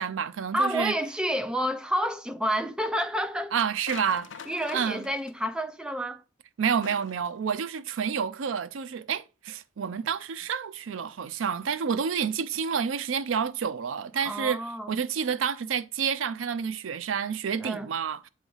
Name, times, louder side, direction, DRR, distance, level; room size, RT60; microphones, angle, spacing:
voice 1, 0.0-1.0 3.5-4.4 4.7-5.1 6.6-18.3, right 7 dB, 85° right, 0.5 m, -29 dB
voice 2, 0.5-3.5 4.5-6.2 14.2-14.9 17.6-17.9, equal, 5° right, 0.6 m, -29 dB
sound 1, 3.9-5.3 6.8-7.3, left 6 dB, 70° left, 0.6 m, -43 dB
8.0 x 3.2 x 5.4 m
head